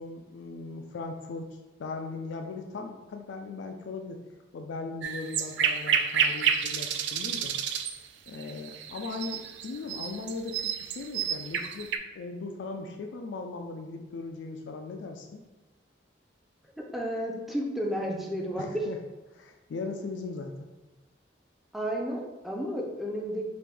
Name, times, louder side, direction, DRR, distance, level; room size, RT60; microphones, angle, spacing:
voice 1, 0.0-4.2 4.5-7.5 8.3-15.4 18.5-19.0 19.3-20.7, left 3 dB, 85° left, 4 dB, 0.4 m, -38 dB
sound 1, 5.0-12.0, right 7 dB, 75° right, 0.4 m, -30 dB
voice 2, 16.9-18.7 21.7-23.4, equal, ahead, -2 dB, 0.5 m, -32 dB
5.0 x 2.5 x 3.3 m, 1.1 s
head